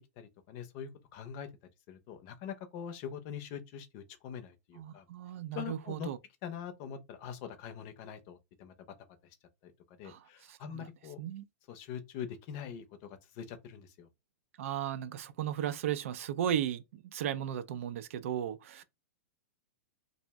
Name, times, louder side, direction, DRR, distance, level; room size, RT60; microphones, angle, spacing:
voice 1, 0.2-1.5 1.9-5.0 5.5-6.1 6.4-8.7 9.6-9.7 10.0-11.2 11.7-14.1, left 8 dB, 40° left, 0.6 m, -43 dB
voice 2, 4.8-6.2 10.0-10.9 11.2-11.4 14.6-18.8, right 10 dB, 60° right, 0.4 m, -36 dB
2.5 x 2.0 x 3.4 m
hypercardioid pair, 145°, 8 cm